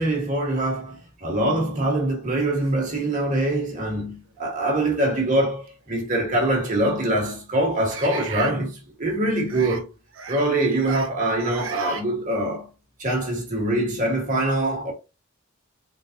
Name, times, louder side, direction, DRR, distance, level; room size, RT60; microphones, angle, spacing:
voice 1, 0.0-9.9 10.3-12.7 13.0-14.9, right 1 dB, 40° right, 1.6 m, -24 dB
sound 1, 3.1-3.2 3.9-4.1 5.7-5.8 7.9-8.5 9.5-9.8 10.1-10.5 10.7-11.1 11.4-12.0, right 4 dB, 70° right, 0.8 m, -34 dB
4.0 x 3.8 x 2.8 m
head